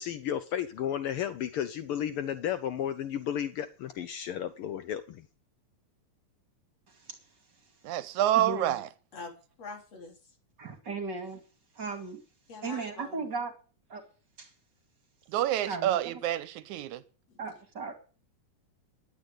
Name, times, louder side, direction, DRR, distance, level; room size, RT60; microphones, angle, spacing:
voice 1, 0.0-5.3, left 10 dB, 90° left, 1.2 m, -33 dB
voice 2, 7.8-8.9 15.3-17.0, right 12 dB, 80° right, 2.2 m, -28 dB
voice 3, 8.4-8.8 10.6-11.4 11.8-12.2 12.6-13.5 13.9-14.0 14.4-14.5 15.7-16.0 17.4-17.9, right 4 dB, 40° right, 2.7 m, -36 dB
voice 4, 9.6-10.3 12.5-13.3 17.3-17.4, left 3 dB, 55° left, 4.7 m, -44 dB
10.5 x 10.0 x 8.0 m
omnidirectional pair, 3.4 m